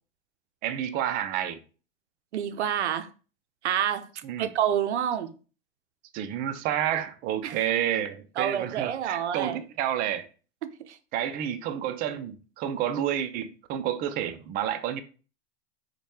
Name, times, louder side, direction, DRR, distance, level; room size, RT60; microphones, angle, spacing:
voice 1, 0.6-1.6 4.2-4.5 6.1-10.3 11.1-15.0, right 10 dB, 30° right, 0.3 m, -29 dB
voice 2, 2.3-3.1 3.6-4.1 4.4-5.3 7.4-7.6 8.4-9.6 10.6-11.0, right 9 dB, 90° right, 0.5 m, -28 dB
3.1 x 2.2 x 4.2 m
hypercardioid pair, 105°, 33 cm